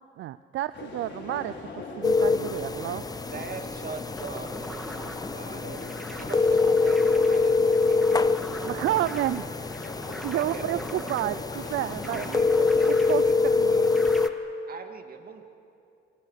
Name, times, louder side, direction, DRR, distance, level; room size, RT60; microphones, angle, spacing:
voice 1, 0.0-3.1 8.6-9.5 10.2-11.3 11.7-12.4 12.8-13.9, right 14 dB, 75° right, 15 dB, 0.5 m, -30 dB
sound 1, 0.7-13.2, left 3 dB, 60° left, 5.5 m, -42 dB
sound 2, 2.0-14.3, left 4 dB, 20° left, 0.8 m, -25 dB
voice 2, 3.3-5.8 6.2-8.3 9.4-9.5 10.3-11.3 12.2-13.9 14.7-15.4, right 5 dB, 50° right, 5 dB, 2.5 m, -41 dB
sound 3, 4.1-14.3, equal, ahead, 2.7 m, -42 dB
27.0 x 25.0 x 6.7 m, 2.6 s
cardioid pair, 90°, 20 cm